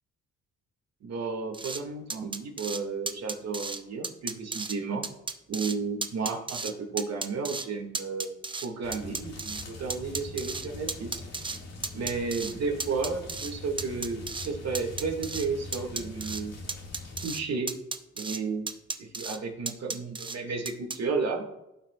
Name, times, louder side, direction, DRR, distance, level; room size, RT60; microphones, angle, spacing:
voice 1, 1.0-5.1 5.5-11.2 11.9-16.6 17.2-17.8 18.2-18.7 19.0-21.5, right 4 dB, 60° right, 2 dB, 1.9 m, -33 dB
sound 1, 1.5-1.8 2.1-2.8 3.1-3.8 4.0-4.8 5.0-5.8 6.0-6.7 7.0-7.7 7.9-9.7 9.9-11.6 11.8-12.5 12.8-13.5 13.8-14.5 14.8-15.5 15.7-16.4 16.7-17.4 17.7-18.4 18.7-19.4 19.7-20.4 20.7-21.0, right 3 dB, 15° right, 0.6 m, -34 dB
sound 2, 8.8-17.3, left 3 dB, 55° left, 1.9 m, -43 dB
16.0 x 5.6 x 2.4 m, 0.92 s
cardioid pair, 90°, 30 cm